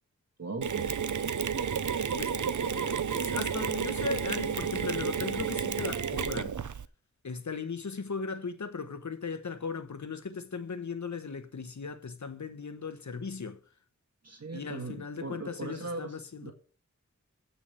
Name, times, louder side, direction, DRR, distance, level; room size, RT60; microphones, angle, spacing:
voice 1, 0.4-0.9 14.2-16.5, right 3 dB, 55° right, 1.7 m, -39 dB
Mechanisms, 0.6-6.8, right 7 dB, 75° right, 0.7 m, -31 dB
voice 2, 2.7-6.6 7.2-13.6 14.5-16.5, left 5 dB, 70° left, 1.1 m, -37 dB
8.4 x 5.9 x 6.9 m
wide cardioid pair, 50°, 30 cm